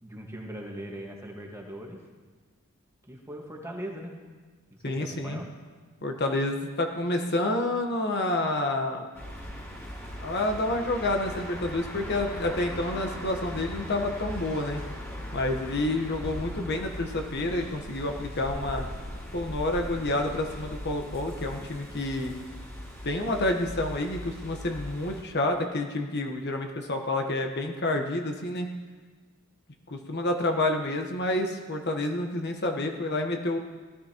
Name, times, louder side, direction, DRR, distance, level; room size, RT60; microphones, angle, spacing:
voice 1, 0.0-2.0 3.1-4.1 4.7-5.5, right 1 dB, 15° right, -1 dB, 1.6 m, -40 dB
voice 2, 4.8-5.4 6.0-9.0 10.2-14.8 15.3-18.8 19.3-22.3 23.0-28.7 29.9-33.6, left 2 dB, 50° left, 3 dB, 1.1 m, -29 dB
sound 1, 9.1-25.2, equal, 10° left, 2.5 m, -39 dB
17.5 x 13.0 x 3.0 m, 1.4 s
head